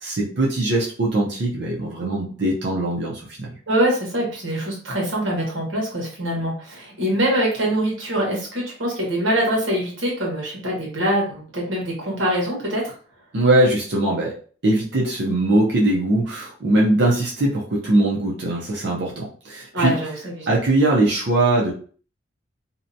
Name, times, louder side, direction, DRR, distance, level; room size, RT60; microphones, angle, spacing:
voice 1, 0.0-3.5 13.3-14.3 14.6-19.9 20.5-21.7, right 1 dB, 55° right, -3 dB, 0.5 m, -21 dB
voice 2, 3.7-12.9 19.7-20.5, right 1 dB, 70° right, -2 dB, 1.1 m, -24 dB
2.7 x 2.1 x 2.6 m, 0.43 s
head